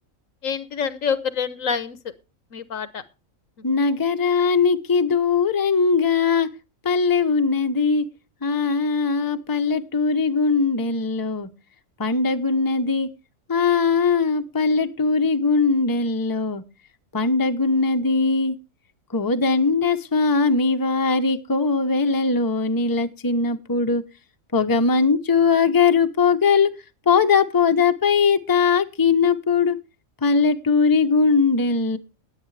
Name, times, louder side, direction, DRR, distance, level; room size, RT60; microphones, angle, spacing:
voice 1, 0.4-2.0 2.5-3.0, left 6 dB, 75° left, 14 dB, 1.4 m, -26 dB
voice 2, 3.6-6.5 6.8-8.0 8.4-11.5 12.0-13.1 13.5-16.6 17.1-18.6 19.1-24.0 24.5-26.7 27.1-29.8 30.2-32.0, left 4 dB, 20° left, 7 dB, 0.8 m, -20 dB
19.5 x 8.3 x 3.3 m, 0.30 s
omnidirectional pair, 1.4 m